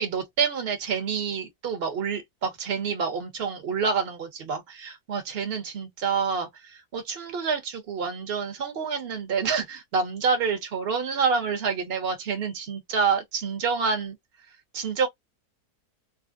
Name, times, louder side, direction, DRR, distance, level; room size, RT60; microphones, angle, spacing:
voice 1, 0.0-14.2 14.7-15.1, right 5 dB, 45° right, 1.2 m, -28 dB
3.3 x 2.4 x 2.3 m
omnidirectional pair, 1.7 m